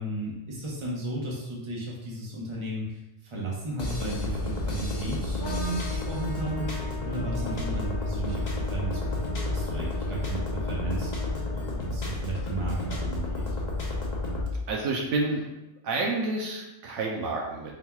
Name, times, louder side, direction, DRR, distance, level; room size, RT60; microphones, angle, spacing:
voice 1, 0.0-9.2 9.5-13.5, right 2 dB, 25° right, -3 dB, 0.8 m, -35 dB
sound 1, 3.8-14.5, left 2 dB, 40° left, 0.7 m, -31 dB
Trumpet, 5.4-11.9, left 6 dB, 90° left, 1.2 m, -41 dB
voice 2, 14.7-15.4 15.8-17.7, right 3 dB, 75° right, -1 dB, 1.0 m, -29 dB
4.2 x 3.8 x 2.3 m, 0.97 s
omnidirectional pair, 1.3 m